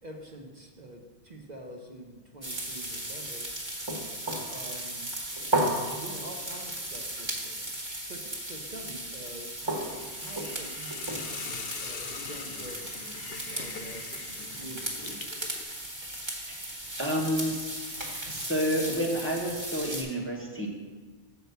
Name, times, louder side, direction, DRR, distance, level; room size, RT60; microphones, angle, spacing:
voice 1, 0.0-3.5 4.5-5.1 5.9-7.6 8.1-12.9 13.5-15.3, right 1 dB, 45° right, 0 dB, 0.9 m, -46 dB
sound 1, 2.4-20.0, right 1 dB, 25° right, 1.3 m, -35 dB
Hiss, 9.8-15.6, left 6 dB, 70° left, 0.8 m, -42 dB
voice 2, 17.0-17.5 18.3-20.7, equal, 15° left, -2 dB, 0.9 m, -29 dB
6.9 x 4.6 x 6.8 m, 1.4 s
omnidirectional pair, 1.0 m